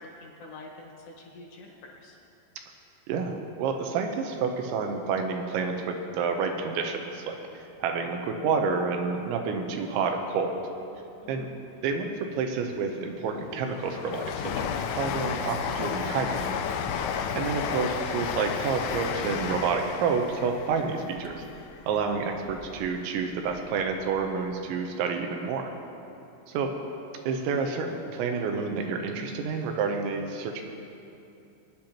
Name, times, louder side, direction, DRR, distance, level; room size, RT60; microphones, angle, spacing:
voice 1, 0.0-2.2 11.2-11.5, left 2 dB, 70° left, -2 dB, 3.3 m, -47 dB
voice 2, 3.1-7.4 7.8-10.5 11.3-11.5 11.8-12.1 12.4-16.6 17.1-21.4 21.9-25.7 26.5-26.7 27.3-30.6, right 5 dB, 85° right, 4 dB, 3.1 m, -29 dB
Train, 12.7-22.9 23.3-24.2 24.5-24.6, left 7 dB, 90° left, 3.1 m, -33 dB
19.5 x 10.5 x 3.0 m, 2.7 s
omnidirectional pair, 5.3 m